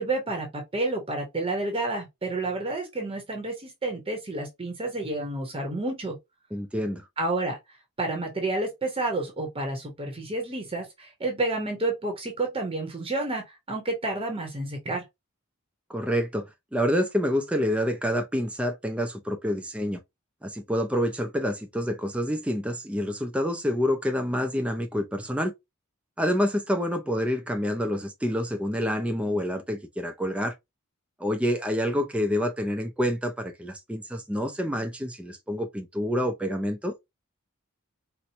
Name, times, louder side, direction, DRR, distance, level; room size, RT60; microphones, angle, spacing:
voice 1, 0.0-6.2 7.2-15.0, right 2 dB, 25° right, 0.8 m, -30 dB
voice 2, 6.5-7.0 15.9-20.0 20.4-25.5 26.2-30.5 31.2-36.9, equal, 5° right, 0.4 m, -27 dB
4.3 x 2.1 x 2.7 m
head